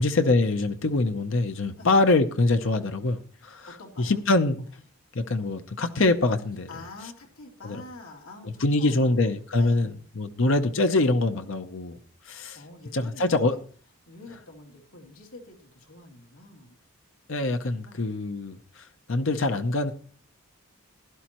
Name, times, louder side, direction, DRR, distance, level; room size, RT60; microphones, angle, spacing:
voice 1, 0.0-3.7 4.0-4.6 5.1-6.7 7.6-7.8 8.6-12.0 12.3-12.6 12.9-13.6 17.3-19.9, left 2 dB, 60° left, 0.7 m, -24 dB
voice 2, 3.7-4.2 4.6-4.7 6.7-10.0 12.2-13.6 14.1-16.8 17.9-18.0, left 2 dB, 85° left, 2.8 m, -46 dB
16.0 x 11.5 x 3.0 m
head